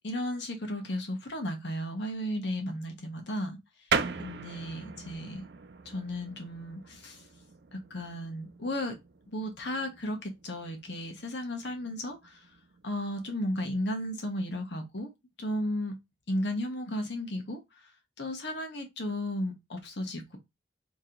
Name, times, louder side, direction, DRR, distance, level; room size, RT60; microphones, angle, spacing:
voice 1, 0.0-3.6 4.2-5.4 5.8-7.2 7.7-9.0 9.3-12.4 12.8-15.1 15.4-16.0 16.3-17.6 18.2-20.4, left 1 dB, 65° left, 1.0 m, -34 dB
sound 1, 3.9-14.1, right 5 dB, 60° right, 0.5 m, -39 dB
3.0 x 2.9 x 3.7 m
head